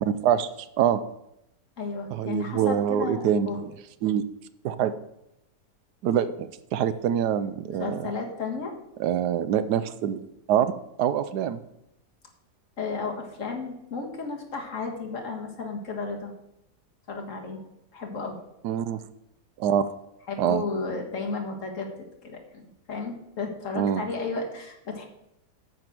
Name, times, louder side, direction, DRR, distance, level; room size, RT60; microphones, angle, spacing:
voice 1, 0.0-0.5 0.8-1.0 2.1-3.7 4.0-4.2 4.6-4.9 6.0-8.0 9.0-10.2 10.5-10.7 11.0-11.6 18.6-19.0 19.6-19.9 20.4-20.6 23.7-24.0, right 9 dB, 80° right, 13 dB, 1.2 m, -25 dB
voice 2, 1.8-3.6 7.8-8.7 12.8-16.3 17.1-17.6 17.9-18.4 20.3-21.9 22.2-25.1, left 4 dB, 50° left, 1 dB, 1.9 m, -33 dB
9.2 x 5.2 x 7.6 m, 0.83 s
omnidirectional pair, 1.8 m